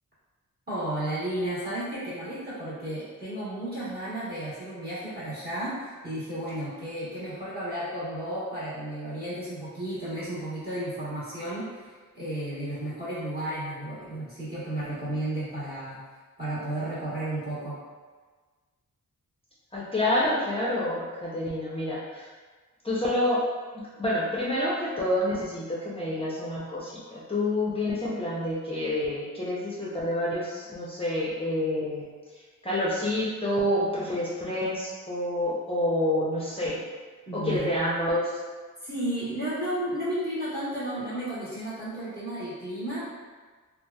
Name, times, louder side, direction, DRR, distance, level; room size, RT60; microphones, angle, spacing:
voice 1, 0.7-16.0 16.4-17.8 37.3-37.7 38.8-43.1, right 1 dB, 30° right, -10 dB, 1.2 m, -33 dB
voice 2, 19.7-22.3 22.8-23.4 24.0-32.0 32.6-36.8 37.3-38.3, left 1 dB, 15° left, -7 dB, 0.6 m, -28 dB
3.1 x 2.4 x 2.2 m, 1.4 s
wide cardioid pair, 85°, 32 cm